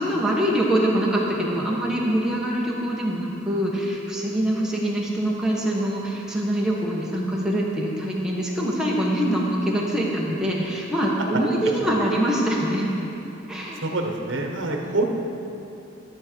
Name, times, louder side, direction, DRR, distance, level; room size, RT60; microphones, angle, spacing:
voice 1, 0.0-12.9 13.5-13.9, right 1 dB, 5° right, -4 dB, 1.3 m, -24 dB
voice 2, 13.8-15.0, right 2 dB, 70° right, 2 dB, 1.1 m, -26 dB
12.0 x 6.7 x 4.6 m, 3.0 s
head